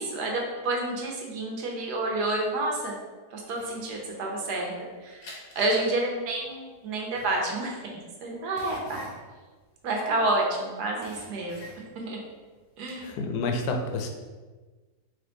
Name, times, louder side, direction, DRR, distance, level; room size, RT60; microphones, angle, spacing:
voice 1, 0.0-3.0 3.3-5.3 5.6-7.8 8.2-9.0 9.8-11.7 11.9-12.2 12.8-13.1, right 2 dB, 75° right, -1 dB, 1.3 m, -29 dB
sound 1, 3.5-4.8 5.2-10.5 10.8-12.1 12.5-13.0, left 1 dB, 65° left, 1.3 m, -47 dB
voice 2, 13.0-14.1, left 3 dB, 80° left, 4 dB, 1.2 m, -29 dB
3.5 x 3.1 x 3.8 m, 1.3 s
omnidirectional pair, 1.7 m